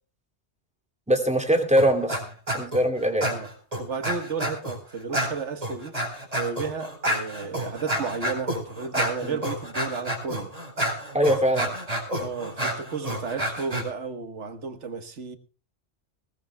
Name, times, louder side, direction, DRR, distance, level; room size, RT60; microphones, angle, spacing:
voice 1, 1.1-2.2 2.5-3.3 9.2-9.4 11.1-11.7, equal, 5° right, 2.6 m, -22 dB
sound 1, 1.8-2.2 2.5-2.8 3.2-4.8 5.1-13.8, right 1 dB, 35° right, 4.6 m, -29 dB
voice 2, 3.2-6.0 6.3-10.5 12.2-15.4, right 5 dB, 90° right, 1.7 m, -33 dB
20.5 x 18.5 x 2.3 m
omnidirectional pair, 1.2 m